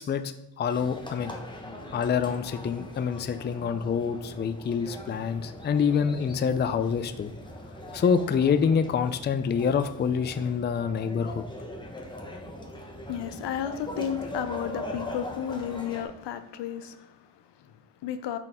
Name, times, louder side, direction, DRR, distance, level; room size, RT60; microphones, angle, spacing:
voice 1, 0.0-1.3 1.9-7.3 7.9-11.4, left 6 dB, 25° left, 10 dB, 0.4 m, -26 dB
sound 1, 0.7-16.0, left 1 dB, 10° left, 1.0 m, -41 dB
voice 2, 13.0-18.4, left 9 dB, 80° left, 10 dB, 0.7 m, -33 dB
6.6 x 4.1 x 3.6 m, 0.95 s
cardioid pair, 75°, 42 cm